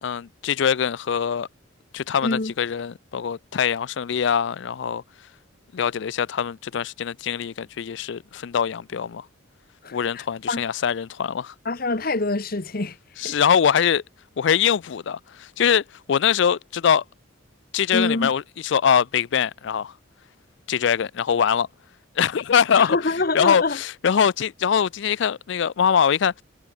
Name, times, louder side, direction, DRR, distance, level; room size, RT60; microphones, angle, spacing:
voice 1, 0.0-1.5 1.9-5.0 5.7-9.2 9.9-11.5 13.2-14.0 14.4-15.8 16.1-17.0 17.7-19.9 20.7-21.7 22.2-23.0 23.3-26.4, left 7 dB, 60° left, 0.4 m, -22 dB
voice 2, 2.2-2.5 9.8-10.6 11.6-13.0 13.2-13.4 17.9-18.3 22.7-23.8, left 2 dB, 45° left, 1.1 m, -25 dB
head